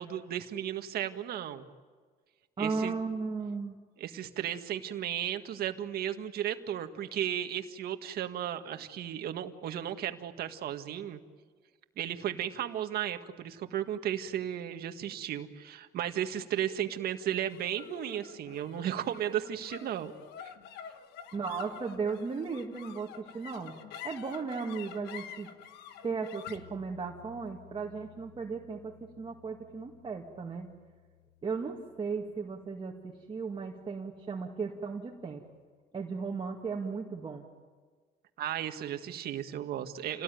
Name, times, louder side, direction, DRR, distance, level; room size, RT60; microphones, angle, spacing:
voice 1, 0.0-1.6 2.6-2.9 4.0-11.2 12.0-20.1 20.4-20.5 38.4-40.2, right 10 dB, 65° right, 7 dB, 1.8 m, -35 dB
voice 2, 2.6-3.8 21.3-23.7 24.0-25.5 26.0-30.7 31.4-35.4 35.9-37.5, right 5 dB, 30° right, 0 dB, 2.3 m, -36 dB
sound 1, 17.5-34.0, left 9 dB, 80° left, 1.4 m, -50 dB
29.0 x 18.5 x 9.3 m, 1.5 s
cardioid pair, 110°, 17 cm